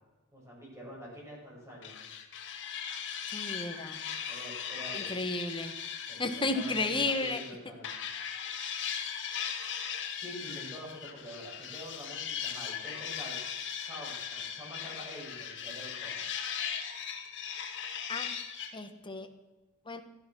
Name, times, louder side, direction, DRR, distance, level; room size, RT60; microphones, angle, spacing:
voice 1, 0.3-2.0 4.3-5.2 6.1-7.9 10.2-13.4 13.8-16.2, equal, 15° right, -4 dB, 7.4 m, -46 dB
sound 1, 1.8-7.5 7.8-18.7, left 7 dB, 55° left, 2.2 m, -38 dB
voice 2, 3.3-4.0 4.9-5.7 6.2-7.4 8.9-9.2 18.1-18.3 18.7-19.3 19.9-20.0, left 3 dB, 20° left, 6 dB, 1.5 m, -33 dB
17.0 x 13.5 x 6.3 m, 1.1 s
head